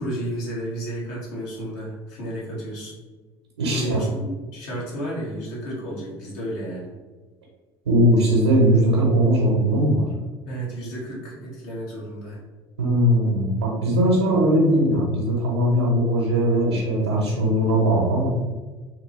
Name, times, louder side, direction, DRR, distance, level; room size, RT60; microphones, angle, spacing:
voice 1, 0.0-2.9 3.8-6.9 10.5-12.4, right 1 dB, 60° left, -5 dB, 1.2 m, -32 dB
voice 2, 3.6-4.0 7.9-10.0 12.8-18.3, right 1 dB, 80° right, -3 dB, 0.7 m, -19 dB
2.9 x 2.9 x 2.6 m, 1.3 s
figure-of-eight pair, 60°, 13 cm